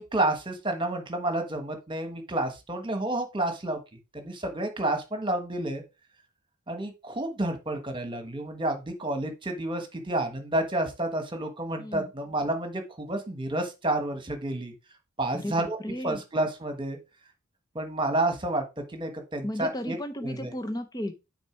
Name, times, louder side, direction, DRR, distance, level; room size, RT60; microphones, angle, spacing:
voice 1, 0.0-3.8 4.1-5.8 6.7-14.7 15.2-15.8 16.0-17.0 17.7-18.6 18.9-20.0 20.2-20.5, right 1 dB, 20° right, 6 dB, 1.4 m, -30 dB
voice 2, 11.8-12.1 15.3-16.2 19.4-21.1, equal, 15° left, 7 dB, 0.7 m, -34 dB
9.1 x 4.4 x 4.5 m, 0.26 s
head